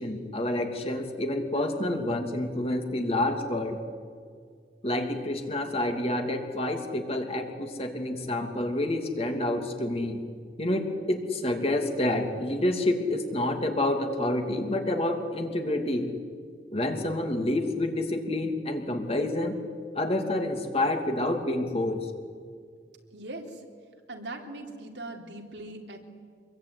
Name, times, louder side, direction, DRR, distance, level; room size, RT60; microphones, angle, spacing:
voice 1, 0.0-3.8 4.8-10.2 10.6-16.1 16.7-19.6 19.9-22.1, left 1 dB, 35° left, 4 dB, 2.8 m, -28 dB
voice 2, 23.1-23.6 24.1-26.0, right 2 dB, 85° right, 2 dB, 3.7 m, -40 dB
26.0 x 22.0 x 9.6 m, 2.1 s
head